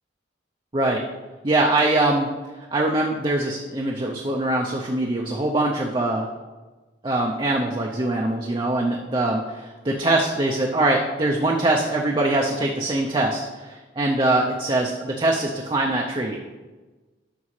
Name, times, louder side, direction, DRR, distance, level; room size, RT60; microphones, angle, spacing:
voice 1, 1.4-2.3 2.7-6.3 7.0-16.4, right 2 dB, 25° right, 0 dB, 0.5 m, -23 dB
9.5 x 6.1 x 3.2 m, 1.2 s
head